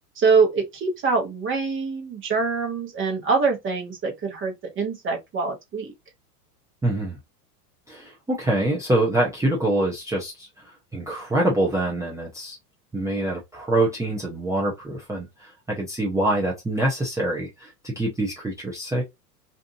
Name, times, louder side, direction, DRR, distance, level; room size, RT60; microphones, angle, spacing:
voice 1, 0.2-5.9, right 4 dB, 25° right, 1.0 m, -24 dB
voice 2, 6.8-7.2 7.9-10.5 10.9-12.6 12.9-19.0, right 1 dB, 5° right, 0.6 m, -25 dB
2.7 x 2.4 x 2.6 m
hypercardioid pair, 110°, 48 cm